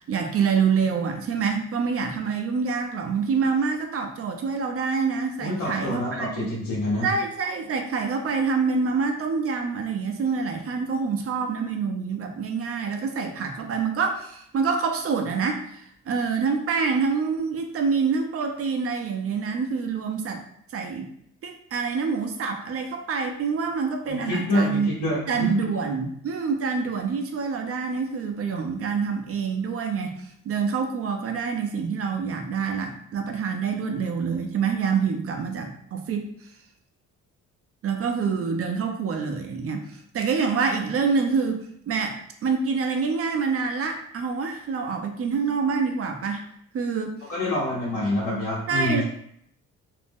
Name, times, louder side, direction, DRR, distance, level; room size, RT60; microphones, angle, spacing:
voice 1, 0.0-6.5 7.0-20.4 20.7-21.1 21.4-24.9 25.3-36.3 37.8-46.4 46.7-47.2 48.7-49.0, right 5 dB, 50° right, 4 dB, 0.5 m, -26 dB
voice 2, 5.4-7.1 24.1-25.5 47.3-49.0, left 1 dB, 90° left, -9 dB, 1.0 m, -27 dB
2.5 x 2.0 x 3.4 m, 0.68 s
cardioid pair, 90°, 30 cm